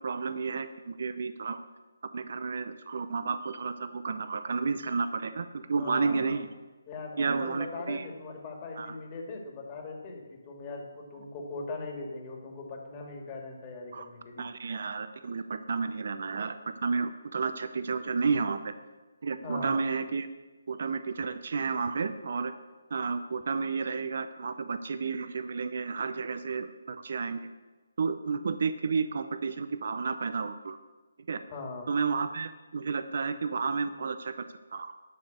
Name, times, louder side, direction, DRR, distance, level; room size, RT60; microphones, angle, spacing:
voice 1, 0.0-1.6 2.1-6.5 7.2-8.1 8.8-9.0 13.9-14.1 14.4-18.7 19.2-20.3 20.7-22.5 22.9-27.5 28.0-30.8 31.3-31.4 31.9-34.9, right 5 dB, 55° right, 11 dB, 0.6 m, -31 dB
voice 2, 5.8-6.4 6.9-14.5 19.4-19.8 31.5-31.9, left 3 dB, 25° left, 0 dB, 2.2 m, -40 dB
11.0 x 5.2 x 7.9 m, 1.2 s
figure-of-eight pair, 150°, 0 cm